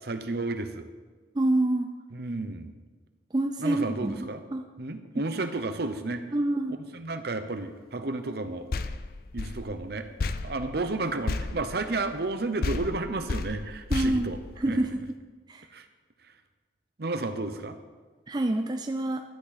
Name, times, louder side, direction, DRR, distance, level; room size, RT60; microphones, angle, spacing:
voice 1, 0.0-0.8 2.1-2.7 3.6-4.4 4.8-6.2 6.7-8.7 9.3-10.1 10.4-14.4 14.7-14.9 15.7-15.9 17.0-17.8, right 2 dB, 55° right, 8 dB, 0.8 m, -32 dB
voice 2, 1.3-1.9 3.3-4.6 6.3-6.8 13.9-14.3 14.6-15.0 15.5-15.7 18.3-19.2, right 1 dB, 25° right, 5 dB, 0.4 m, -27 dB
sound 1, 8.7-12.3 12.6-15.1, left 3 dB, 55° left, 0.4 m, -33 dB
12.0 x 8.6 x 4.1 m, 1.4 s
head